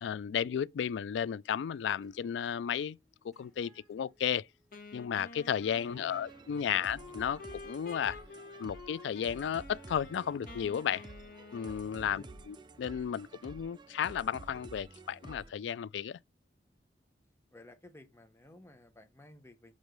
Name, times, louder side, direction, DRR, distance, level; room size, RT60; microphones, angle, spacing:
voice 1, 0.0-3.0 3.2-4.5 4.9-8.2 8.6-11.1 11.5-16.2, left 8 dB, 80° left, 0.3 m, -34 dB
sound 1, 1.3-10.5, equal, ahead, 3.2 m, -69 dB
Wind instrument woodwind instrument, 4.7-12.6, left 3 dB, 55° left, 1.6 m, -50 dB
voice 2, 5.8-7.0 12.0-12.4 17.5-19.7, left 1 dB, 15° left, 1.0 m, -56 dB
sound 2, 5.8-15.5, right 2 dB, 25° right, 0.5 m, -51 dB
5.3 x 4.8 x 5.1 m
head